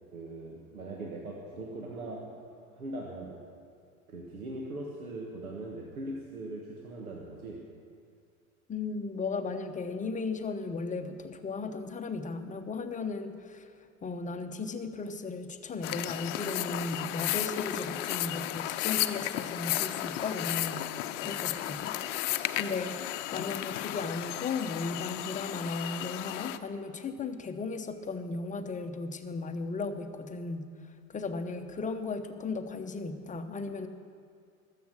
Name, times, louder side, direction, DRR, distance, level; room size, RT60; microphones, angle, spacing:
voice 1, 0.1-2.4 2.7-3.4 4.1-7.6, right 2 dB, 80° right, -1 dB, 1.6 m, -40 dB
voice 2, 8.7-13.7 14.0-20.8 21.2-21.9 22.5-23.0 23.3-30.7 31.1-33.9, left 4 dB, 20° left, 7 dB, 0.9 m, -36 dB
sound 1, 15.8-26.6, left 13 dB, 55° left, 0.7 m, -34 dB
20.5 x 7.6 x 6.4 m, 2.3 s
figure-of-eight pair, 75°, 43 cm